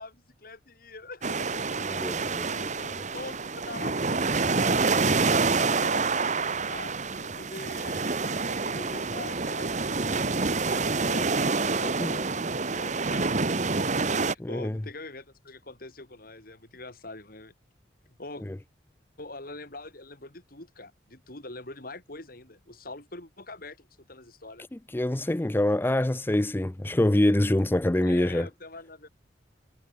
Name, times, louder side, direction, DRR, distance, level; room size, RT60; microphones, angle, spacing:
voice 1, 0.0-2.0 2.5-5.1 5.6-10.4 10.7-11.5 11.8-13.3 14.3-17.5 18.2-18.5 19.2-24.6 28.0-29.1, left 2 dB, 55° left, 4.0 m, -44 dB
sound 1, 1.2-14.3, right 4 dB, 40° right, 1.3 m, -27 dB
voice 2, 1.9-3.0 5.6-5.7 12.0-12.1 14.4-14.8 18.5-18.6 24.7-28.5, left 1 dB, 10° left, 0.4 m, -26 dB
head